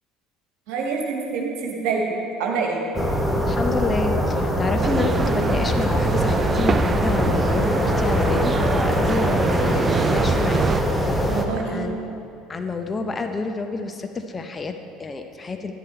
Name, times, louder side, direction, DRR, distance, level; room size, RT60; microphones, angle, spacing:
voice 1, 0.7-2.1 2.4-2.8 11.3-11.9, right 5 dB, 55° right, -1 dB, 2.1 m, -26 dB
sound 1, 2.9-11.4, equal, ahead, 1.2 m, -22 dB
voice 2, 3.5-9.8 10.1-10.6 10.9-12.1 12.5-15.7, left 3 dB, 25° left, 6 dB, 0.8 m, -29 dB
sound 2, 4.8-10.8, right 6 dB, 30° right, 0.3 m, -25 dB
12.0 x 11.0 x 4.4 m, 2.5 s
figure-of-eight pair, 60°, 0 cm